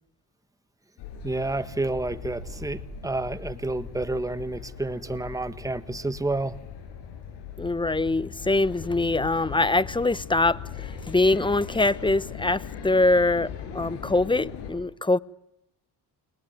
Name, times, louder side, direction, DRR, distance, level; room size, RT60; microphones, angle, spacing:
sound 1, 1.0-14.7, left 7 dB, 80° left, 7.4 m, -39 dB
voice 1, 1.2-6.6, right 2 dB, 10° right, 1.6 m, -30 dB
voice 2, 7.6-15.2, left 2 dB, 10° left, 1.0 m, -23 dB
29.5 x 21.5 x 9.4 m
supercardioid pair, 80°, 41 cm